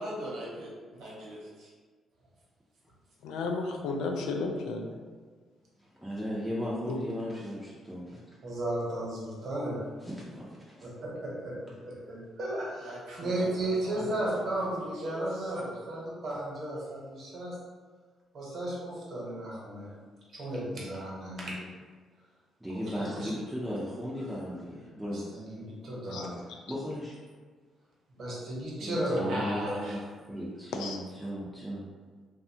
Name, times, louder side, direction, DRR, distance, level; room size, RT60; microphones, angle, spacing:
voice 1, 0.0-1.7 12.8-15.7 29.1-30.0, equal, 85° right, -5 dB, 0.8 m, -40 dB
voice 2, 3.2-5.0 6.9-7.0 14.0-14.1 26.1-26.3 30.7-31.0, left 3 dB, 90° left, 2 dB, 0.3 m, -33 dB
voice 3, 5.8-8.4 10.0-10.9 22.6-25.4 26.7-27.2 28.8-30.0 30.3-31.8, equal, 10° right, -7 dB, 0.5 m, -36 dB
voice 4, 8.4-9.8 10.8-17.6 18.3-19.9 20.3-21.7 23.0-23.3 25.0-26.4 28.1-29.9, right 1 dB, 60° right, -5 dB, 0.9 m, -34 dB
2.6 x 2.2 x 2.7 m, 1.5 s
cardioid pair, 90°, 0 cm